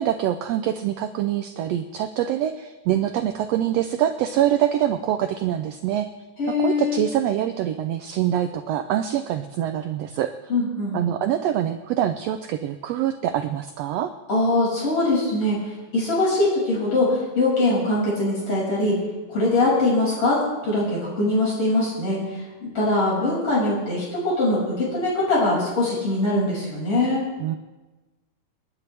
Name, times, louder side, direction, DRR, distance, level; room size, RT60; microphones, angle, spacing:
voice 1, 0.0-6.1 6.5-10.3 10.9-14.1 27.4-27.6, right 11 dB, 85° right, 8 dB, 1.4 m, -24 dB
voice 2, 6.4-7.0 10.5-11.0 14.3-15.6 15.9-18.9 19.3-20.4 20.6-22.2 22.6-27.2, left 2 dB, 45° left, -6 dB, 6.9 m, -22 dB
28.5 x 10.0 x 3.4 m, 1.2 s
omnidirectional pair, 3.5 m